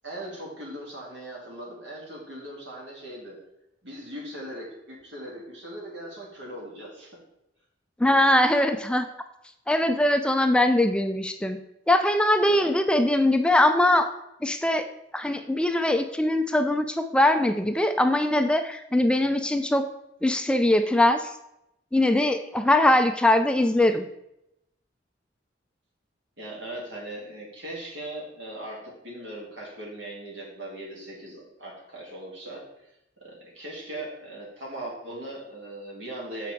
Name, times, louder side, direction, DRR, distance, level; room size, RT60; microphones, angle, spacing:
voice 1, 0.0-3.4 3.8-7.1 12.6-12.7 23.7-24.0 26.4-32.6 33.2-36.5, right 1 dB, 80° right, -3 dB, 2.7 m, -39 dB
voice 2, 8.0-9.1 9.7-11.6 11.9-14.1 14.4-14.8 15.1-19.9 20.2-21.3 21.9-24.1, left 1 dB, 5° left, 7 dB, 0.4 m, -21 dB
7.1 x 5.1 x 4.5 m, 0.83 s
head